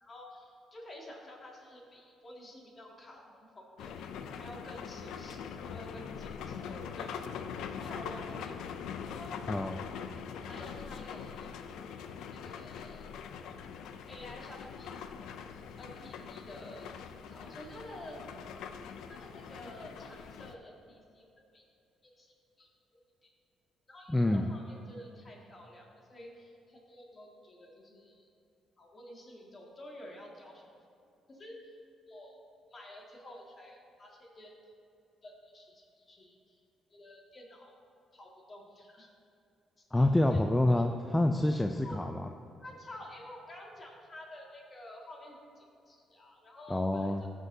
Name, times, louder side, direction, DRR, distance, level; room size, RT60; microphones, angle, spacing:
voice 1, 0.0-4.1 4.3-7.1 7.8-8.5 9.0-9.4 10.4-11.5 12.3-13.1 14.1-15.0 15.8-18.2 19.0-21.3 21.5-21.6 22.2-23.3 23.9-28.3 28.8-30.6 31.3-31.7 32.1-32.4 32.7-34.5 35.2-36.6 36.9-37.7 38.1-39.1 39.9-40.4 40.7-40.8 41.8-42.0 42.6-47.3, left 1 dB, 35° left, -2 dB, 2.0 m, -50 dB
sound 1, 3.8-20.5, left 7 dB, 85° left, 0.4 m, -43 dB
voice 2, 9.5-9.8 24.1-24.5 39.9-42.3 46.7-47.2, left 1 dB, 10° left, 5 dB, 0.4 m, -27 dB
14.5 x 6.1 x 2.7 m, 2.6 s
cardioid pair, 90°, 0 cm